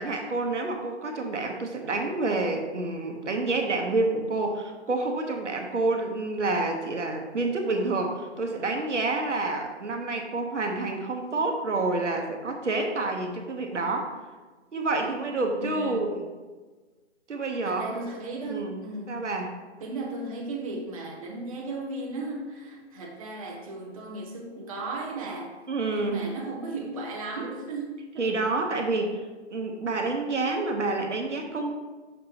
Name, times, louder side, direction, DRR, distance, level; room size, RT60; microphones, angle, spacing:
voice 1, 0.0-14.1 14.7-16.2 17.3-17.9 18.5-18.7 19.1-19.5 25.7-26.2 28.2-29.2 29.5-31.7, right 3 dB, 85° right, 3 dB, 1.2 m, -28 dB
voice 2, 15.6-16.0 17.6-19.2 19.8-25.5 25.9-28.3, right 2 dB, 30° right, -1 dB, 0.9 m, -36 dB
6.5 x 5.5 x 2.9 m, 1.3 s
hypercardioid pair, 155°, 35 cm